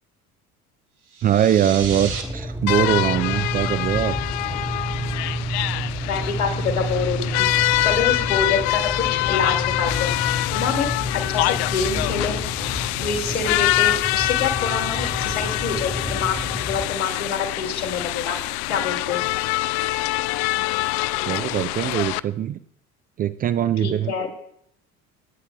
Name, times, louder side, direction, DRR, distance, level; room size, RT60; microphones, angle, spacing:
sound 1, 1.1-2.2, right 5 dB, 80° right, 1.7 m, -33 dB
voice 1, 1.2-4.2 21.2-22.6 23.2-24.1, right 10 dB, 25° right, 12 dB, 0.3 m, -22 dB
sound 2, 1.8-16.9, equal, 5° right, 1.3 m, -30 dB
sound 3, 2.7-22.2, left 18 dB, 50° left, 0.5 m, -25 dB
voice 2, 6.0-7.5 7.8-8.9 9.3-10.2 10.5-10.9 11.3-12.4 13.0-18.4 18.7-19.2 23.8-24.3, left 5 dB, 80° left, 0 dB, 2.7 m, -26 dB
27.0 x 9.4 x 2.3 m, 0.71 s
figure-of-eight pair, 60°, 43 cm